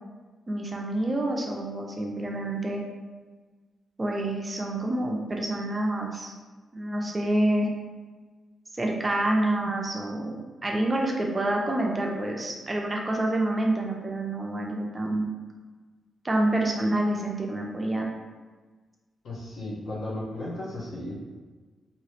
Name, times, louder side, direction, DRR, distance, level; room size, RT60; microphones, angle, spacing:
voice 1, 0.5-2.8 4.0-6.3 6.7-7.7 8.8-15.3 16.2-18.1, right 1 dB, 20° right, 1 dB, 0.3 m, -27 dB
voice 2, 19.2-21.2, left 1 dB, 70° left, -5 dB, 0.9 m, -35 dB
2.9 x 2.8 x 3.1 m, 1.3 s
wide cardioid pair, 175°, 0 cm